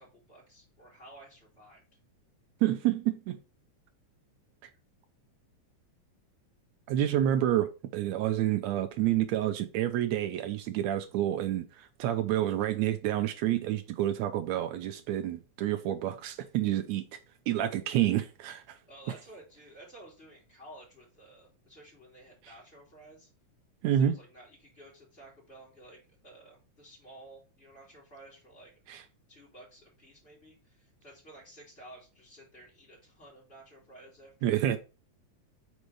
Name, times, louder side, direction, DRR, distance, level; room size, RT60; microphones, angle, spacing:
voice 1, 0.0-1.8 18.9-23.3 23.8-28.7 29.3-34.6, right 1 dB, 20° left, 3.1 m, -53 dB
voice 2, 2.6-3.4 6.9-17.0 17.5-18.8 23.8-24.1 28.9-29.0 34.4-34.8, right 12 dB, 80° right, 1.6 m, -28 dB
5.3 x 4.1 x 4.8 m
omnidirectional pair, 3.5 m